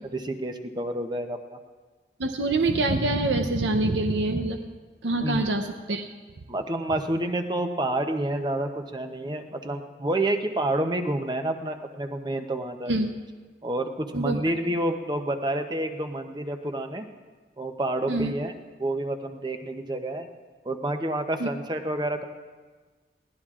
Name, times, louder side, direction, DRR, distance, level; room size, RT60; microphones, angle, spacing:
voice 1, 0.1-1.6 5.2-5.5 6.5-12.9 13.6-17.1 17.6-18.5 18.8-20.3 20.6-22.2, right 1 dB, 25° right, 6 dB, 0.7 m, -29 dB
voice 2, 2.2-4.6 5.0-6.1 12.9-13.1 14.1-14.4 18.1-18.3 21.4-21.5, right 2 dB, 85° right, 5 dB, 0.7 m, -25 dB
21.5 x 16.0 x 2.5 m, 1.4 s
head